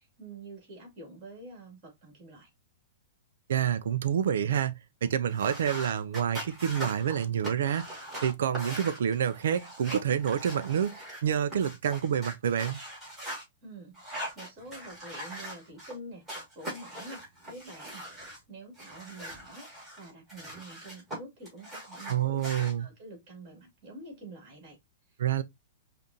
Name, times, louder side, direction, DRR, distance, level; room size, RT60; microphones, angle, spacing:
voice 1, 0.0-2.5 13.6-19.7 20.0-22.4 22.8-24.8, right 2 dB, 35° right, 2.5 m, -47 dB
voice 2, 3.5-4.7 5.0-12.8 22.1-22.9 25.2-25.4, right 9 dB, 70° right, 0.4 m, -28 dB
sound 1, 5.3-13.4 13.9-15.9 16.3-18.4 18.8-21.2 21.4-22.7, equal, 10° right, 2.0 m, -41 dB
5.1 x 2.5 x 2.7 m
hypercardioid pair, 165°, 0 cm